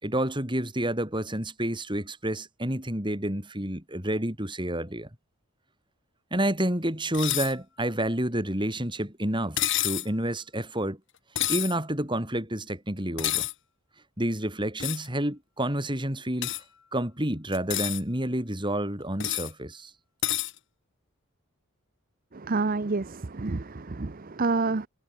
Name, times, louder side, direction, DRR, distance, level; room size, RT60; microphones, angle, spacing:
voice 1, 0.0-5.1 6.3-11.0 11.5-13.5 14.2-16.5 16.9-19.9, right 1 dB, 20° right, 6.0 m, -29 dB
sound 1, 7.1-7.5 9.6-10.1 11.4-11.7 13.2-13.5 14.8-15.1 16.4-16.6 17.5-18.0 19.2-19.5 20.2-20.5, left 13 dB, 55° left, 5.2 m, -28 dB
voice 2, 22.3-24.9, right 3 dB, 40° right, 0.7 m, -28 dB
head